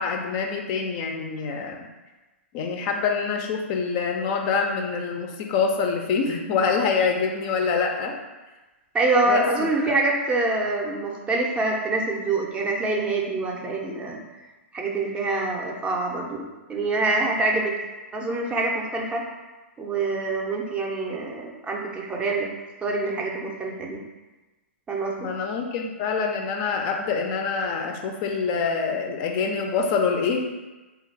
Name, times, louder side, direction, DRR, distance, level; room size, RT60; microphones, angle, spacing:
voice 1, 0.0-1.9 2.5-8.1 9.2-9.9 25.2-30.5, left 5 dB, 40° left, 3 dB, 0.4 m, -25 dB
voice 2, 8.9-14.2 14.7-17.7 18.1-19.2 19.8-22.5 22.8-24.0 24.9-25.3, right 2 dB, 15° right, 0 dB, 0.4 m, -25 dB
3.3 x 2.3 x 3.2 m, 1.2 s
hypercardioid pair, 115°, 7 cm